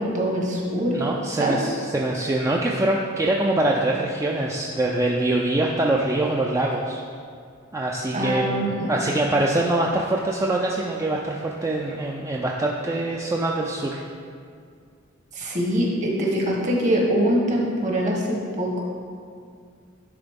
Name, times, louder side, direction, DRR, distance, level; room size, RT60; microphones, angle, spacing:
voice 1, 0.0-1.0 1.3-1.6 8.1-8.9 15.3-18.8, right 1 dB, 40° right, -2 dB, 1.2 m, -23 dB
voice 2, 0.9-7.0 7.7-14.0, right 2 dB, 15° right, -1 dB, 0.3 m, -24 dB
10.5 x 3.9 x 3.5 m, 2.2 s
head